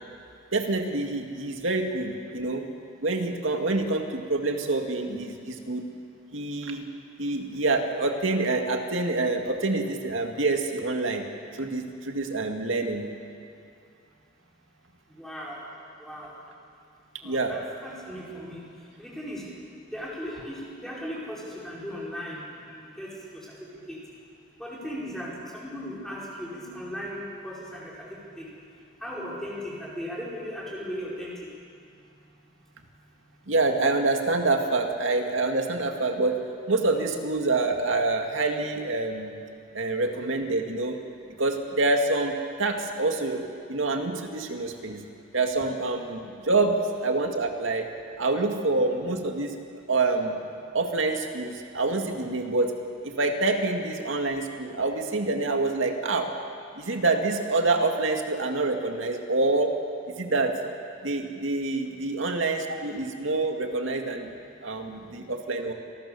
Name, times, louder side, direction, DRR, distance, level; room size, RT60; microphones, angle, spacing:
voice 1, 0.5-2.6 3.0-5.9 6.3-6.8 7.2-11.2 11.5-13.1 17.2-17.6 33.5-36.4 36.7-39.3 39.7-41.0 41.4-45.0 45.3-47.9 48.2-49.5 49.9-50.4 50.7-52.7 53.0-56.3 56.8-59.7 60.2-60.6 61.0-64.3 64.6-65.7, right 3 dB, 85° right, 4 dB, 2.2 m, -26 dB
voice 2, 15.2-15.6 16.0-16.3 17.2-18.6 19.0-19.4 19.9-23.4 23.9-24.0 24.6-27.9 28.4-28.5 29.0-31.3, equal, ahead, -6 dB, 4.9 m, -37 dB
27.5 x 19.5 x 7.0 m, 2.4 s
head